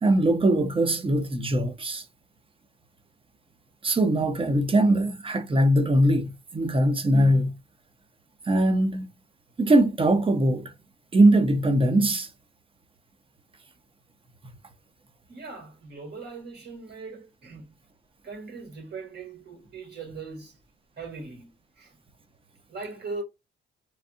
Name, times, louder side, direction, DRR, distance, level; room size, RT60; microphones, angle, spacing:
voice 1, 0.0-2.0 3.8-7.5 8.5-9.1 9.6-10.7 11.1-12.3, right 1 dB, 25° right, 0.8 m, -21 dB
voice 2, 15.3-17.7 18.2-20.5 21.0-21.5 21.8-21.9 22.7-23.2, right 4 dB, 55° right, 1.8 m, -39 dB
3.2 x 2.3 x 2.7 m
cardioid pair, 90°, 20 cm